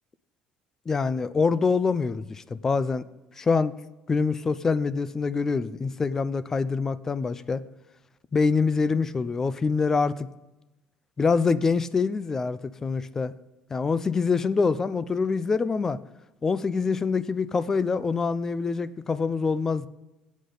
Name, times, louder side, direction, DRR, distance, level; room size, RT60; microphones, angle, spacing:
voice 1, 0.9-3.0 3.4-3.7 4.1-7.6 8.3-10.3 11.2-13.3 13.7-16.0 16.4-19.9, left 4 dB, 20° left, 16 dB, 0.4 m, -25 dB
19.5 x 8.4 x 3.9 m, 1.0 s
cardioid pair, 165°, 3 cm